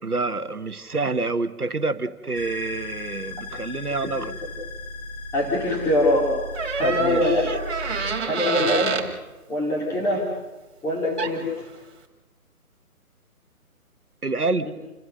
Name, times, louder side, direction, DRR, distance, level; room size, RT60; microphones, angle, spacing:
voice 1, 0.0-4.4 6.8-7.6 14.2-14.7, right 3 dB, 80° right, 9 dB, 1.6 m, -27 dB
sound 1, 2.3-8.2, left 2 dB, 45° left, 5.4 m, -36 dB
voice 2, 5.3-6.3 6.8-7.4 8.3-9.0 9.5-10.3 10.8-11.5 14.7-14.8, left 1 dB, 5° left, -3 dB, 2.9 m, -23 dB
Door, 6.5-9.1 10.9-11.0 11.2-11.6, right 5 dB, 45° right, 3.5 m, -27 dB
29.0 x 16.0 x 6.6 m, 1.1 s
figure-of-eight pair, 145°, 44 cm